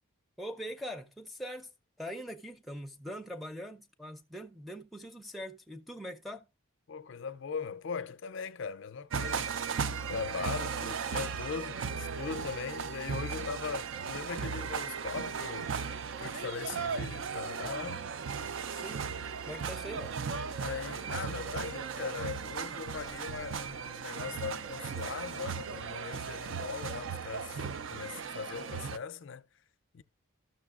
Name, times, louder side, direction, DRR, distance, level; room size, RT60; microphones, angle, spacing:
voice 1, 0.4-1.7 2.0-6.5 18.7-19.1 19.5-20.2, equal, ahead, 0.5 m, -42 dB
voice 2, 6.9-15.7 16.2-18.1 20.6-29.5 29.9-30.0, left 5 dB, 55° left, 0.4 m, -40 dB
sound 1, 9.1-29.0, right 6 dB, 60° right, 0.4 m, -37 dB
13.0 x 6.4 x 2.4 m
head